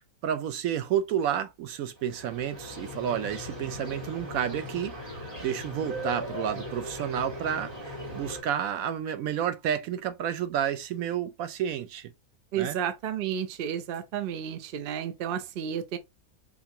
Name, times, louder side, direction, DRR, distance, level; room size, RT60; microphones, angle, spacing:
voice 1, 0.2-4.9 5.4-12.1 12.6-12.8, right 9 dB, 75° right, 1.0 m, -30 dB
sound 1, 2.0-8.4, equal, 25° right, 1.5 m, -38 dB
voice 2, 12.5-16.0, right 9 dB, 55° right, 0.6 m, -32 dB
4.5 x 2.7 x 2.7 m
omnidirectional pair, 1.5 m